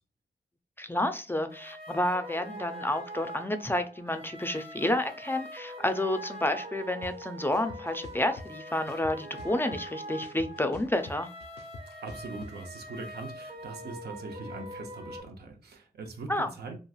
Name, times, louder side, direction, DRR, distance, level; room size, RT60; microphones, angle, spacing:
voice 1, 0.8-11.3 16.3-16.5, left 1 dB, 15° left, 8 dB, 0.4 m, -30 dB
sound 1, 1.5-15.2, equal, 35° right, 0.8 m, -43 dB
sound 2, 7.0-7.1 7.5-8.5 8.9-9.9 10.2-12.5, left 3 dB, 85° left, 0.4 m, -45 dB
voice 2, 12.0-16.8, right 3 dB, 80° right, 5 dB, 0.6 m, -41 dB
3.0 x 2.4 x 2.3 m, 0.36 s
cardioid pair, 60°, 16 cm